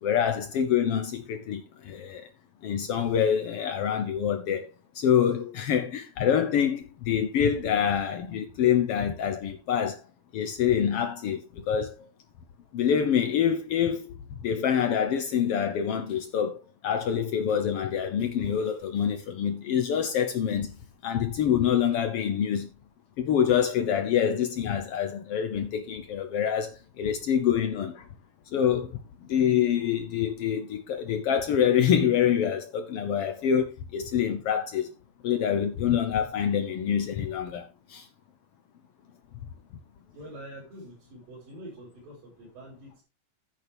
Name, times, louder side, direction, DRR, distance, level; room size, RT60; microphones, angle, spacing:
voice 1, 0.0-2.3 2.6-4.7 4.9-10.0 10.3-12.1 12.7-14.1 14.4-20.7 21.0-22.7 23.2-28.0 28.5-29.0 29.3-34.9 35.2-38.0, left 8 dB, 90° left, 1.3 m, -26 dB
voice 2, 40.1-43.0, right 1 dB, 75° right, 6.6 m, -45 dB
11.0 x 9.2 x 3.5 m
omnidirectional pair, 4.1 m